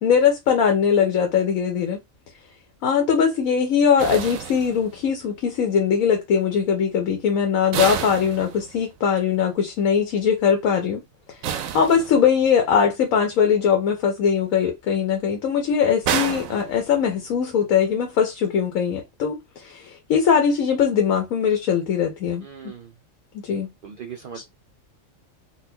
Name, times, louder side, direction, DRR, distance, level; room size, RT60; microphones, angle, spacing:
voice 1, 0.0-2.0 2.8-11.0 11.3-22.4 23.4-23.7, left 7 dB, 85° left, 1.2 m, -21 dB
sound 1, 4.0-5.3 7.7-9.1 11.4-12.6 16.0-17.4, right 9 dB, 90° right, 1.0 m, -30 dB
voice 2, 22.4-22.9 23.8-24.5, right 7 dB, 50° right, 0.7 m, -39 dB
4.0 x 2.2 x 2.8 m
omnidirectional pair, 1.4 m